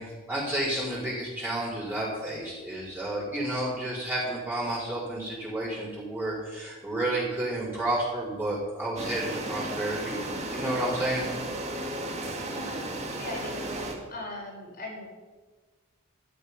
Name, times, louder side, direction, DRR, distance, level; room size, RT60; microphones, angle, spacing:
voice 1, 0.0-11.3, right 1 dB, 10° right, -8 dB, 4.3 m, -31 dB
sound 1, 9.0-13.9, right 1 dB, 30° right, 1.9 m, -34 dB
voice 2, 12.5-12.8 13.2-15.1, left 2 dB, 45° left, -1 dB, 4.2 m, -40 dB
13.0 x 11.0 x 5.5 m, 1.3 s
head